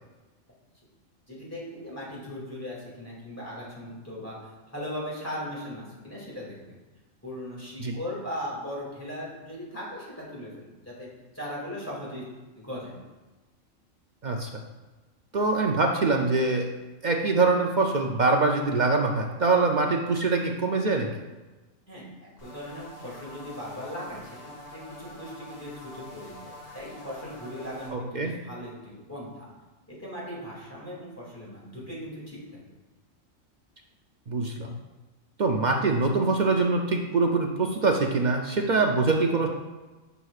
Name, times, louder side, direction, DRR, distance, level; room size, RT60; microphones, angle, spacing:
voice 1, 1.3-4.4 4.7-6.6 7.2-11.1 11.3-12.2 12.5-12.9 21.9-24.3 24.7-29.5 29.9-32.4, equal, 10° left, -6 dB, 2.3 m, -38 dB
voice 2, 14.2-14.6 15.3-16.7 17.0-21.1 27.9-28.3 34.3-34.8 35.4-39.5, right 3 dB, 60° right, 2 dB, 0.4 m, -24 dB
sound 1, 22.4-27.9, left 1 dB, 90° left, 2.5 m, -45 dB
11.0 x 6.0 x 2.4 m, 1.2 s
omnidirectional pair, 1.4 m